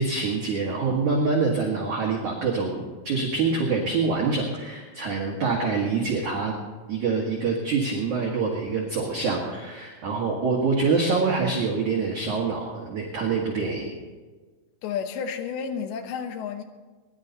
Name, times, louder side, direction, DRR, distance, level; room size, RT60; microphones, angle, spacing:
voice 1, 0.0-6.5 6.9-13.9, right 4 dB, 60° right, -2 dB, 2.2 m, -25 dB
voice 2, 14.8-16.6, left 7 dB, 75° left, 6 dB, 2.4 m, -31 dB
22.5 x 11.0 x 4.1 m, 1.3 s
omnidirectional pair, 5.7 m